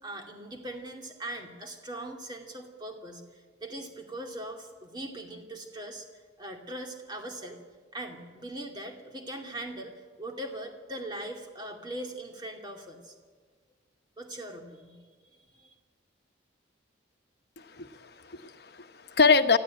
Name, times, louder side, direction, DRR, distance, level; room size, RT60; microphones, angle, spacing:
voice 1, 0.0-6.1 6.4-7.6 7.9-13.1 14.2-15.0 15.5-15.7, right 1 dB, 25° right, 2 dB, 2.6 m, -40 dB
voice 2, 17.6-19.6, left 4 dB, 55° left, 8 dB, 1.1 m, -25 dB
25.0 x 15.0 x 8.9 m, 1.5 s
head